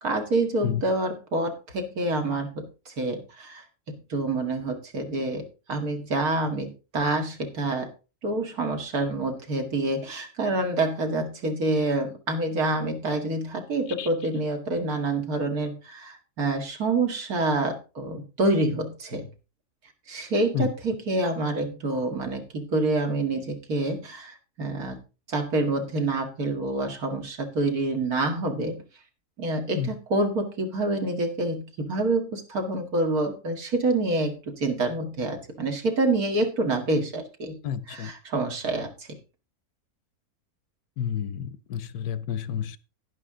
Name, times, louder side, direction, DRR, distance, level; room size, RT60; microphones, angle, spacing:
voice 1, 0.0-3.6 4.1-7.9 8.2-19.3 20.1-25.0 25.3-28.8 29.4-37.6 37.9-38.9, right 2 dB, 75° right, 4 dB, 2.5 m, -27 dB
voice 2, 37.6-38.1 41.0-42.8, left 9 dB, 85° left, 16 dB, 1.3 m, -30 dB
11.0 x 11.0 x 3.7 m, 0.31 s
omnidirectional pair, 1.6 m